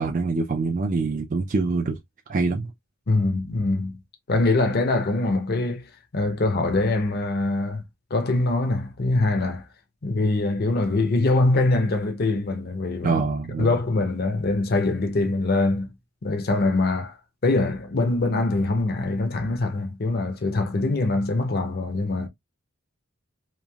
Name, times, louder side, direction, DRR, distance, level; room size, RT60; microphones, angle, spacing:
voice 1, 0.0-2.0 2.3-2.7 13.0-13.8, right 3 dB, 40° right, 0.4 m, -25 dB
voice 2, 3.1-4.0 4.3-7.8 8.1-9.7 10.0-13.2 13.6-15.9 16.2-17.2 17.4-22.3, left 2 dB, 50° left, 0.6 m, -23 dB
3.1 x 2.5 x 2.2 m
head